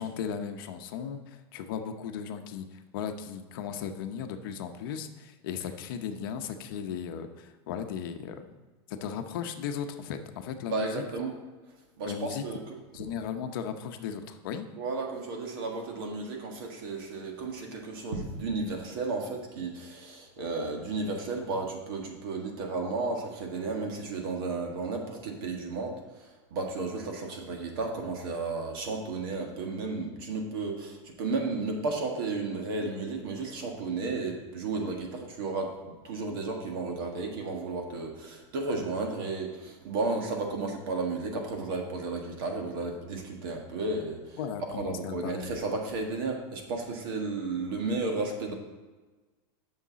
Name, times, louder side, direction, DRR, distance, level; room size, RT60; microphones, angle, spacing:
voice 1, 0.0-8.4 8.9-11.0 12.0-12.4 12.9-14.7 44.4-45.6, left 7 dB, 55° left, 6 dB, 0.7 m, -36 dB
voice 2, 10.7-11.3 12.0-12.8 14.8-35.7 36.0-44.4 44.7-48.5, right 3 dB, 60° right, 2 dB, 1.7 m, -33 dB
8.8 x 6.6 x 4.1 m, 1.3 s
supercardioid pair, 180°, 13 cm